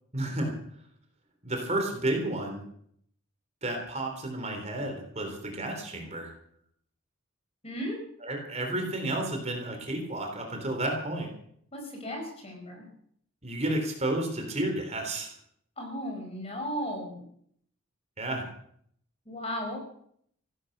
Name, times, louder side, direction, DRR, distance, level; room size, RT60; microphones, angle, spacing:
voice 1, 0.1-0.5 1.4-2.6 3.6-6.3 8.2-11.3 13.4-15.3 18.2-18.5, right 1 dB, 30° right, 3 dB, 3.6 m, -31 dB
voice 2, 7.6-8.0 11.7-12.9 15.8-17.2 19.2-19.8, equal, 30° left, 2 dB, 5.0 m, -35 dB
16.0 x 12.0 x 6.6 m, 0.66 s
head